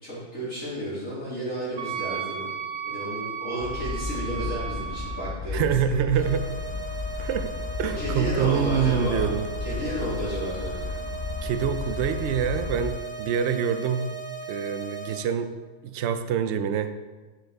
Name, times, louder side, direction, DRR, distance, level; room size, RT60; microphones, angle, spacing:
voice 1, 0.0-2.5 2.8-6.3 8.0-9.3 9.6-10.8, right 1 dB, 55° left, -10 dB, 3.3 m, -32 dB
Wind instrument woodwind instrument, 1.8-5.4, right 8 dB, 90° right, 1.3 m, -34 dB
sound 1, 3.6-12.9, left 4 dB, 40° left, 0.6 m, -34 dB
voice 2, 5.5-6.5 7.2-7.5 7.8-9.5 11.4-14.1 14.5-15.5 15.8-16.9, right 8 dB, 65° right, 10 dB, 0.7 m, -26 dB
sound 2, 6.2-15.2, right 4 dB, 80° left, 3.3 m, -37 dB
9.8 x 6.6 x 3.5 m, 1.3 s
omnidirectional pair, 1.6 m